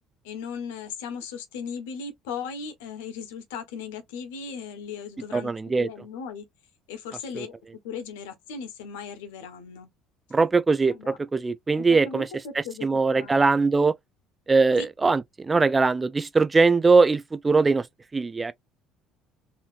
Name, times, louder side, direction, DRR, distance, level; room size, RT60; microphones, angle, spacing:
voice 1, 0.2-6.5 6.9-7.5 7.8-9.9 10.9-11.2 11.8-13.4 14.8-14.9, left 6 dB, 65° left, 1.1 m, -37 dB
voice 2, 5.3-5.9 7.3-7.5 10.3-12.3 12.5-14.0 14.5-17.9 18.1-18.5, right 4 dB, 20° right, 0.3 m, -21 dB
4.1 x 2.8 x 2.5 m
figure-of-eight pair, 55°, 0 cm